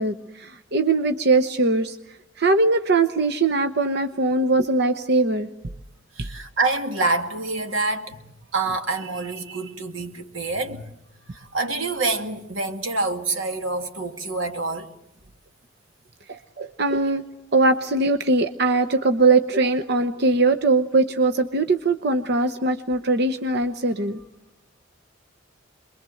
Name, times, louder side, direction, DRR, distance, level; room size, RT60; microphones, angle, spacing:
voice 1, 0.0-2.0 2.4-5.5 6.2-6.3 16.3-17.2 17.5-24.2, right 3 dB, 55° right, 1.0 m, -21 dB
voice 2, 6.2-8.2 8.5-10.8 11.3-14.9, right 3 dB, 85° right, 2.4 m, -26 dB
26.5 x 22.0 x 7.8 m
head